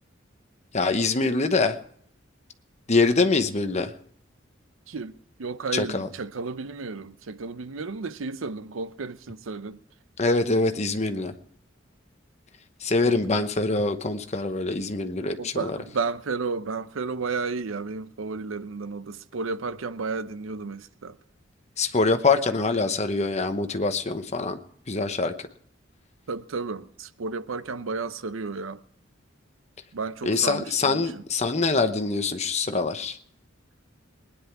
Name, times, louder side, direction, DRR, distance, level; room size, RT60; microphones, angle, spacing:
voice 1, 0.7-1.8 2.9-3.9 5.7-6.1 10.2-11.3 12.8-15.8 21.8-24.6 24.9-25.5 30.2-33.2, left 3 dB, 35° left, 0.9 m, -24 dB
voice 2, 5.4-9.8 13.1-13.5 15.4-21.1 26.3-28.8 29.9-31.0, right 4 dB, 80° right, 0.6 m, -32 dB
20.0 x 10.0 x 4.7 m
head